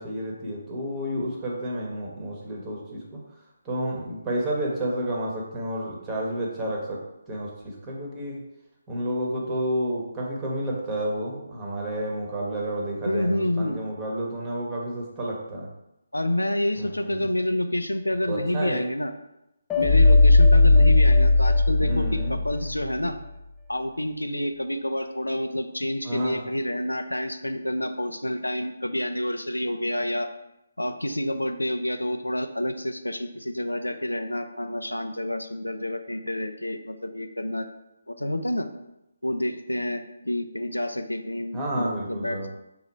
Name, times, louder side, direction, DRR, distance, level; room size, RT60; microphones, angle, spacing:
voice 1, 0.0-3.2 3.6-7.0 7.3-8.4 8.9-15.7 16.8-17.3 18.3-18.9 21.8-22.4 26.0-26.4 41.5-42.5, right 1 dB, 15° right, -3 dB, 1.0 m, -30 dB
voice 2, 13.0-13.8 16.1-19.1 19.8-23.2 23.7-30.3 30.8-37.7 38.1-38.7 39.2-42.5, left 1 dB, 85° left, 7 dB, 0.4 m, -28 dB
sound 1, 19.7-22.9, left 2 dB, 10° left, 0.5 m, -17 dB
3.8 x 2.9 x 4.1 m, 0.88 s
figure-of-eight pair, 145°, 0 cm